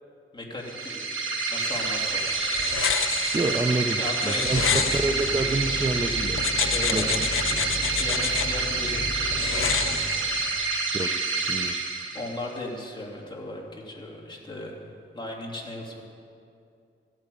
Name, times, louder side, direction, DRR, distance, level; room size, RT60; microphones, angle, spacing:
voice 1, 0.3-1.1 1.5-2.2 4.0-5.0 6.6-7.1 7.9-9.0 9.5-9.9 12.1-14.9 15.1-16.0, left 1 dB, 20° left, -2 dB, 2.8 m, -36 dB
sound 1, 0.6-12.5, right 4 dB, 75° right, 1.6 m, -28 dB
sound 2, 1.7-5.9 6.4-8.5 9.3-10.6, left 7 dB, 80° left, 0.7 m, -30 dB
voice 2, 3.3-6.4 6.9-7.6 10.9-11.1 11.5-11.8, right 2 dB, 20° right, 5 dB, 0.6 m, -28 dB
sound 3, 4.5-10.0, left 1 dB, 55° left, 2.7 m, -35 dB
15.0 x 8.9 x 8.4 m, 2.5 s
wide cardioid pair, 100°, 21 cm